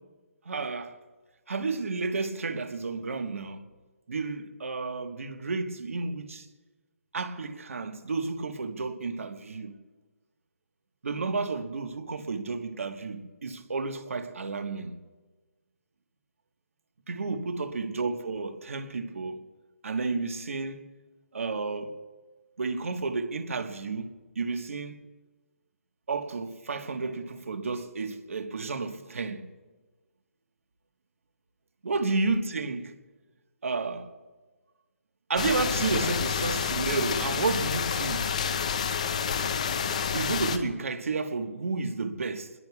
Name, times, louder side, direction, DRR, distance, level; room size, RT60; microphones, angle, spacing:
voice 1, 0.4-1.0 1.5-3.6 4.1-6.5 7.1-9.8 11.0-14.9 17.1-19.4 19.8-20.8 21.3-22.0 22.6-25.0 26.1-29.4 31.8-32.9 33.6-34.1 35.3-38.3 40.1-42.5, right 3 dB, 65° right, 1.4 m, -31 dB
sound 1, 35.4-40.6, left 7 dB, 25° left, 0.7 m, -29 dB
25.0 x 20.5 x 2.4 m
hypercardioid pair, 175°, 8 cm